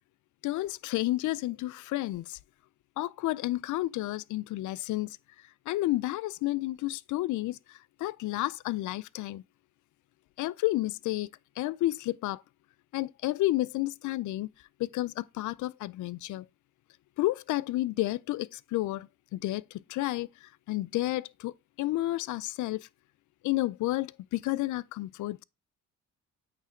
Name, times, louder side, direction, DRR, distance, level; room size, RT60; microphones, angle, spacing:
voice 1, 0.4-2.4 3.0-5.2 5.7-9.4 10.4-11.3 11.6-12.4 12.9-14.5 14.8-16.4 17.2-22.9 23.4-25.4, left 17 dB, 75° left, 0.5 m, -31 dB
8.6 x 3.3 x 4.9 m
cardioid pair, 90°, 30 cm